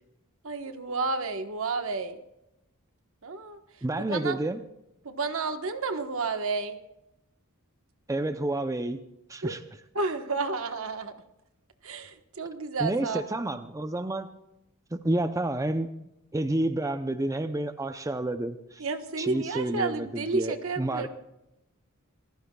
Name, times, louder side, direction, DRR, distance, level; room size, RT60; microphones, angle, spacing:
voice 1, 0.4-2.2 3.2-4.4 5.0-6.8 9.4-9.5 9.9-11.1 11.8-13.2 18.8-21.1, right 3 dB, 65° right, 7 dB, 1.3 m, -31 dB
voice 2, 3.8-4.6 8.1-9.0 9.3-9.6 12.8-14.3 14.9-18.9 19.2-21.1, right 1 dB, 15° right, 9 dB, 0.6 m, -30 dB
27.5 x 15.0 x 2.3 m, 0.89 s
head